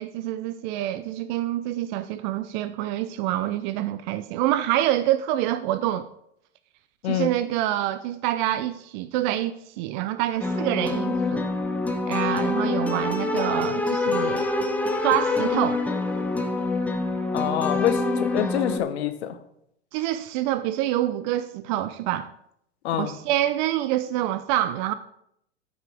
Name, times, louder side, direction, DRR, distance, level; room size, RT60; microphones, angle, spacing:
voice 1, 0.0-6.1 7.0-11.5 12.1-14.5 15.0-15.8 19.9-22.3 23.0-24.9, right 13 dB, 40° right, 0.5 m, -26 dB
sound 1, 10.4-18.8, left 3 dB, 5° left, 0.8 m, -26 dB
voice 2, 17.3-18.0 18.3-19.4 22.8-23.1, left 11 dB, 65° left, 1.1 m, -25 dB
13.5 x 5.8 x 3.4 m
hypercardioid pair, 100°, 35 cm